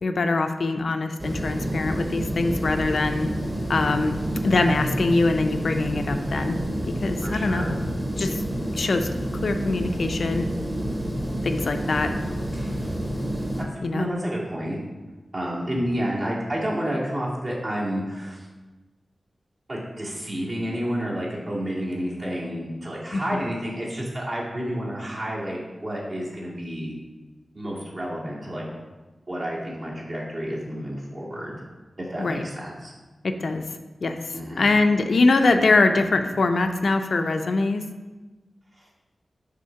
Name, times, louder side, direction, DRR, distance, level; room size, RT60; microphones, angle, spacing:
voice 1, 0.0-3.3 3.7-4.2 4.4-6.6 6.9-7.7 8.2-8.4 8.7-9.1 9.4-10.5 11.4-12.1 13.8-14.1 23.1-23.4 32.2-32.4 33.2-33.6 34.0-34.2 34.6-37.8, left 3 dB, 70° left, 6 dB, 0.4 m, -23 dB
sound 1, 1.2-13.6, right 1 dB, 15° right, 1.0 m, -29 dB
voice 2, 7.2-7.8 13.9-14.8 15.3-18.5 19.7-26.9 27.5-28.8 29.3-31.5 32.0-32.9 34.3-34.7, equal, 50° right, -6 dB, 2.1 m, -30 dB
6.3 x 3.5 x 5.7 m, 1.2 s
wide cardioid pair, 120°, 0 cm